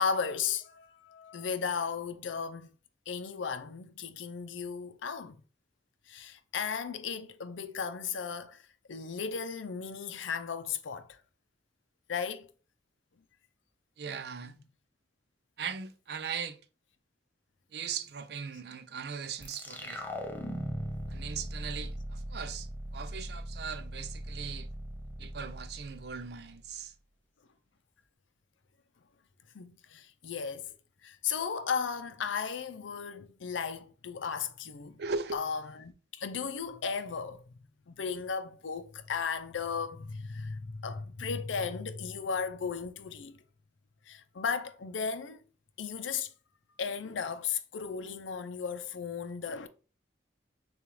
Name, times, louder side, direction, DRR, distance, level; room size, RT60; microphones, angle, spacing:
voice 1, 0.0-2.7 3.1-5.4 6.1-8.6 8.9-11.2 12.1-12.5 14.4-14.7 29.5-30.7 31.0-35.0 35.3-37.4 37.9-43.4 44.1-45.4 45.8-46.3 46.8-49.7, left 6 dB, 85° left, 0.5 m, -35 dB
voice 2, 14.0-14.5 15.6-16.6 17.7-20.0 21.1-24.7 25.2-26.9 35.0-35.5, right 6 dB, 60° right, 0.5 m, -39 dB
sound 1, 19.4-26.7, equal, 10° left, 0.6 m, -40 dB
6.7 x 2.4 x 3.1 m
head